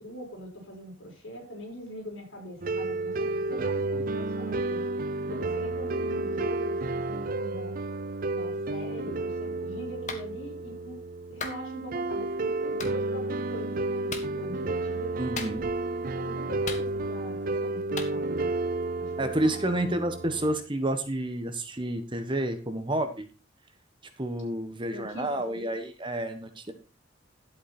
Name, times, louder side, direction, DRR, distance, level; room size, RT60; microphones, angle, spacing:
voice 1, 0.0-4.9 5.2-7.7 8.3-11.0 11.3-15.1 16.2-18.5 19.0-19.6 24.9-25.7, left 1 dB, 70° left, 0 dB, 5.4 m, -42 dB
sound 1, 2.6-20.6, right 2 dB, 45° right, 0.5 m, -31 dB
Clapping, 10.1-10.3 11.4-11.6 12.8-12.9 14.1-14.3 15.4-15.8 16.7-17.2 18.0-18.1, left 5 dB, 35° left, 1.6 m, -37 dB
voice 2, 15.2-15.6 19.2-23.3 24.2-26.7, right 1 dB, 25° right, 8 dB, 1.2 m, -30 dB
11.5 x 8.3 x 4.3 m, 0.33 s
head